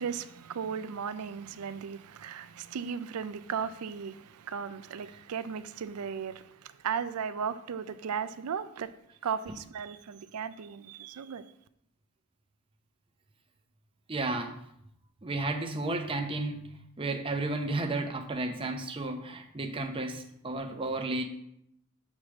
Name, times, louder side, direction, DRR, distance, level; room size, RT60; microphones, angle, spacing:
voice 1, 0.0-8.9 9.2-11.4, right 7 dB, 85° right, 0.4 m, -36 dB
voice 2, 14.1-14.6 15.2-21.2, right 2 dB, 25° right, 0.7 m, -33 dB
7.3 x 3.3 x 6.2 m
head